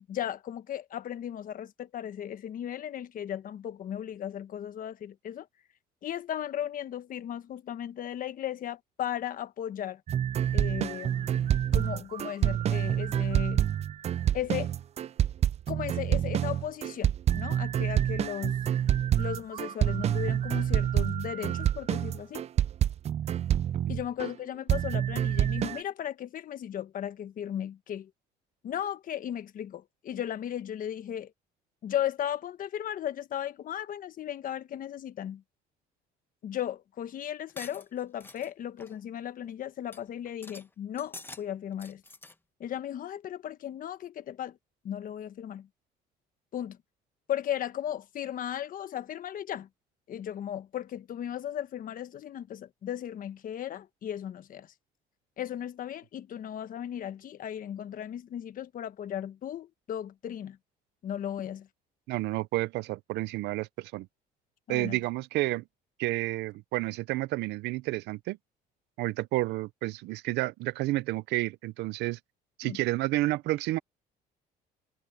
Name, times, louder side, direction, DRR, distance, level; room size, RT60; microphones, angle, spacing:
voice 1, 0.0-5.5 6.0-10.0 10.5-13.6 14.3-14.7 15.7-18.6 19.2-22.4 23.9-28.1 28.6-31.3 31.8-35.4 36.4-42.0 42.6-44.6 44.8-45.7 46.5-46.8 47.3-49.7 50.1-54.7 55.4-60.6 61.0-61.7 64.7-65.0 72.6-72.8, left 10 dB, 55° left, 1.3 m, -36 dB
sound 1, 10.1-24.3 24.7-25.8, right 10 dB, 40° right, 0.4 m, -27 dB
sound 2, 37.5-38.5 38.8-39.0 39.4-39.5 39.9-40.0 40.3-40.7 41.0-41.4 41.7-42.3, left 2 dB, 15° left, 1.1 m, -47 dB
voice 2, 62.1-64.1 64.7-65.6 66.0-68.4 69.0-72.2 72.6-73.8, right 19 dB, 85° right, 0.6 m, -30 dB
cardioid pair, 110°, 17 cm